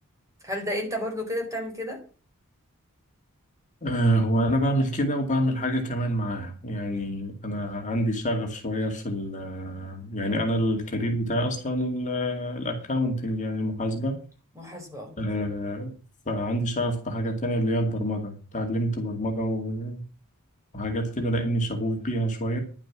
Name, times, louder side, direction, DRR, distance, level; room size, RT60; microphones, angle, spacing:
voice 1, 0.4-2.0 6.8-7.1 14.5-15.1, equal, 15° right, 1 dB, 4.5 m, -32 dB
voice 2, 3.8-14.2 15.2-15.9 16.3-20.0 20.7-22.6, equal, 35° left, 2 dB, 2.3 m, -27 dB
11.0 x 7.3 x 7.4 m, 0.37 s
head